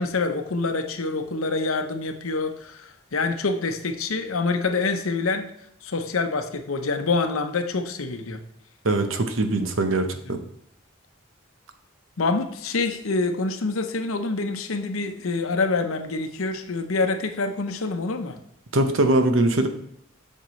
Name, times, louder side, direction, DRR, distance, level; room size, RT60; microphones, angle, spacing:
voice 1, 0.0-5.5 5.8-8.4 10.2-10.4 12.2-18.4, left 3 dB, 85° left, 7 dB, 0.8 m, -26 dB
voice 2, 8.8-10.4 18.7-19.7, right 2 dB, 70° right, 7 dB, 0.9 m, -21 dB
7.6 x 6.6 x 3.1 m, 0.73 s
head